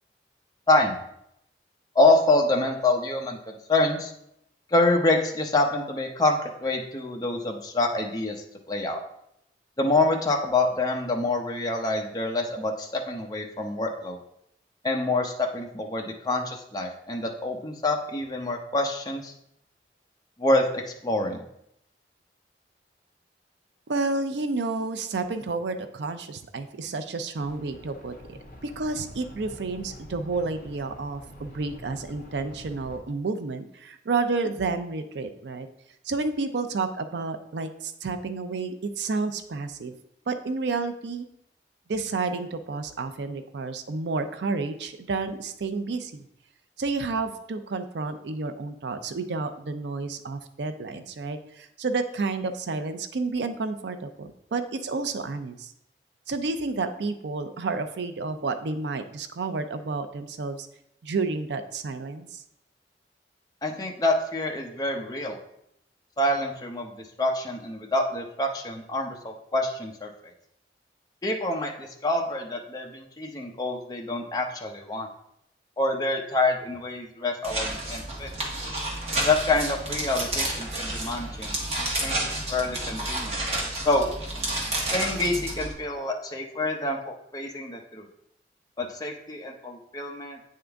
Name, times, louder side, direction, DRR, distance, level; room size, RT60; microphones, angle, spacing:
voice 1, 1.9-4.1 4.7-8.3 8.7-9.0 9.8-14.2 14.8-19.3 20.4-21.4 63.6-65.4 66.2-70.1 71.2-75.1 75.8-78.3 79.2-83.3 83.8-84.1 84.9-87.0 87.3-88.1 88.8-90.4, left 2 dB, 20° left, 1 dB, 0.7 m, -26 dB
voice 2, 23.9-35.7 36.0-39.9 40.3-41.3 41.9-46.3 46.8-55.7 56.3-60.7 61.0-62.4, right 3 dB, 80° right, 9 dB, 0.5 m, -30 dB
sound 1, 27.4-33.0, equal, 45° left, 1.5 m, -46 dB
sound 2, 77.4-85.7, right 1 dB, 35° right, 1.2 m, -30 dB
8.8 x 3.7 x 3.4 m, 0.77 s
head